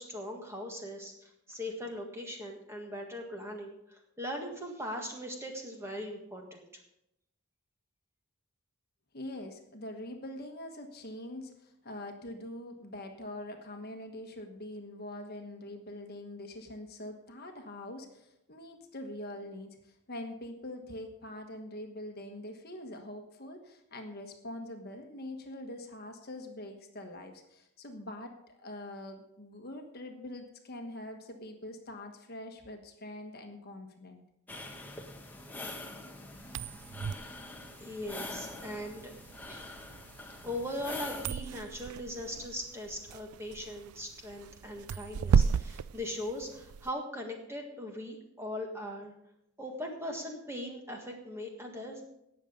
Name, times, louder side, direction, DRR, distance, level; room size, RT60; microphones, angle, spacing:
voice 1, 0.0-6.7 37.8-39.1 39.5-39.7 40.4-49.1 49.6-52.0, left 1 dB, 10° right, 2 dB, 1.7 m, -40 dB
voice 2, 9.1-34.2, left 1 dB, 45° left, 4 dB, 1.3 m, -44 dB
sound 1, 34.5-41.3, left 2 dB, 10° left, 1.1 m, -44 dB
sound 2, 36.4-46.9, right 6 dB, 80° right, 0.4 m, -34 dB
18.5 x 6.9 x 5.2 m, 0.83 s
head